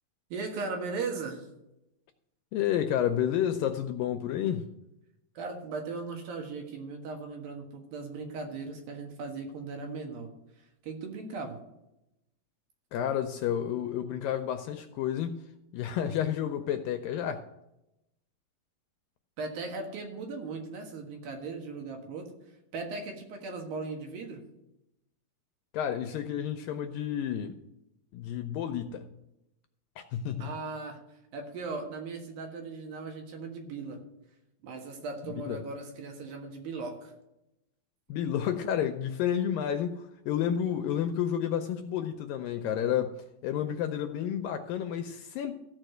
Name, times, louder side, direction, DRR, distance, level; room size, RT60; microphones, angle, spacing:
voice 1, 0.3-1.5 5.3-10.3 10.8-11.6 19.4-22.3 22.7-24.4 30.4-31.0 31.3-34.0 34.6-37.1, right 4 dB, 70° right, 3 dB, 3.2 m, -38 dB
voice 2, 2.5-4.7 12.9-15.4 15.7-17.4 25.7-27.6 28.1-29.0 30.0-30.5 35.5-35.6 38.1-43.1 43.4-45.5, left 9 dB, 80° left, 7 dB, 2.1 m, -30 dB
14.5 x 4.9 x 7.7 m, 0.89 s
omnidirectional pair, 4.4 m